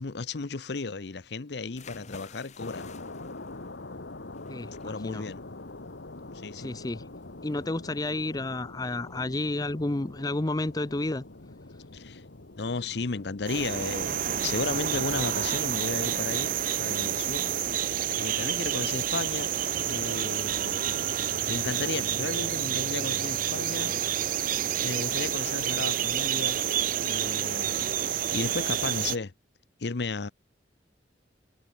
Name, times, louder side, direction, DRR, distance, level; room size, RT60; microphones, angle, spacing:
voice 1, 0.0-2.9 4.8-5.4 6.3-6.8 11.9-12.2 12.6-19.5 19.8-23.9 24.8-26.6 27.0-29.3 29.8-30.3, left 4 dB, 70° left, 0.8 m, -34 dB
sound 1, 1.7-11.0, left 5 dB, 40° left, 1.3 m, -54 dB
sound 2, 2.6-21.8, left 2 dB, 85° left, 1.6 m, -46 dB
voice 2, 4.5-5.2 6.5-7.0 7.4-11.2, left 2 dB, 20° left, 0.6 m, -31 dB
sound 3, 13.5-29.2, right 10 dB, 50° right, 0.5 m, -29 dB
head